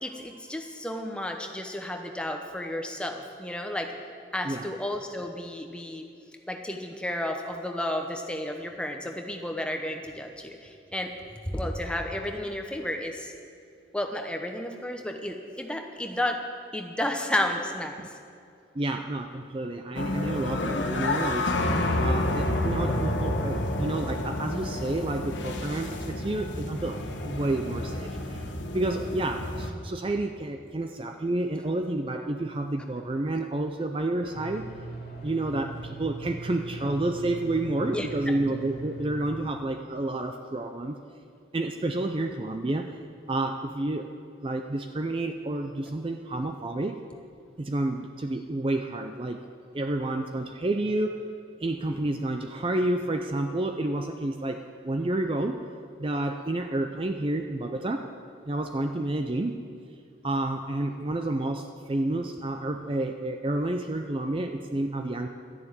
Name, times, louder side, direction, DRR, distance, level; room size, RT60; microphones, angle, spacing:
voice 1, 0.0-3.9 4.3-6.0 6.5-11.1 11.5-13.3 13.9-16.4 16.7-18.0 37.9-38.1, left 1 dB, 5° left, 3 dB, 0.9 m, -32 dB
voice 2, 18.7-21.6 22.0-28.4 28.7-34.7 35.2-41.0 41.5-43.0 43.3-44.1 44.4-47.0 47.6-49.4 49.7-51.3 51.6-55.6 56.0-58.1 58.4-59.6 60.2-65.3, right 2 dB, 30° right, 6 dB, 0.5 m, -30 dB
sound 1, 19.9-29.7, left 1 dB, 80° left, 1.2 m, -29 dB
sound 2, 34.2-39.4, right 3 dB, 55° left, 2.2 m, -40 dB
13.0 x 6.9 x 9.7 m, 2.3 s
head